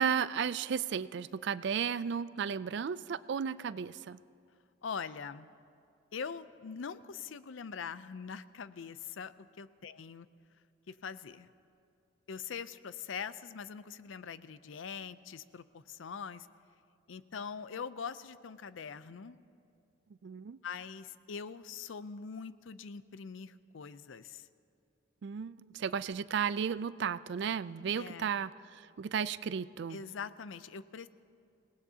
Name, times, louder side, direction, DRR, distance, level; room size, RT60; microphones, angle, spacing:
voice 1, 0.0-4.2 20.2-20.6 25.2-30.0, right 7 dB, 60° right, 17 dB, 0.3 m, -34 dB
voice 2, 4.8-5.5 6.1-10.3 10.9-11.5 12.3-16.5 17.1-19.4 20.6-24.4 28.0-28.3 29.9-31.1, left 6 dB, 75° left, 14 dB, 0.5 m, -43 dB
28.0 x 18.5 x 2.8 m, 2.5 s
head